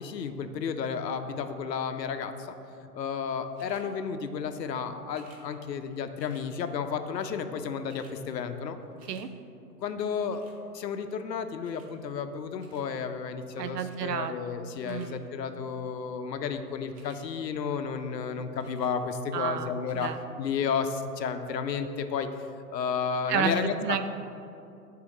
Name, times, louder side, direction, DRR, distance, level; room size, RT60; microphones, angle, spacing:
voice 1, 0.0-2.5 2.9-8.8 9.8-10.4 10.7-20.1 20.4-22.3 22.7-24.0, left 6 dB, 80° left, 8 dB, 0.6 m, -32 dB
sound 1, 3.5-3.9 5.1-5.4 6.2-6.5 7.4-7.5 7.7-8.2 8.6-9.3 10.3-10.6 11.6-11.9 12.6-12.9 13.7-14.0 14.6-15.1 16.8-17.2 18.6-19.0 19.8-20.1 20.8-20.9, right 3 dB, 25° right, 0.6 m, -58 dB
voice 2, 13.6-14.5 14.8-15.3 19.3-20.2 23.3-24.1, right 7 dB, 75° right, 10 dB, 0.6 m, -31 dB
7.6 x 2.8 x 5.0 m, 2.7 s
hypercardioid pair, 120°, 49 cm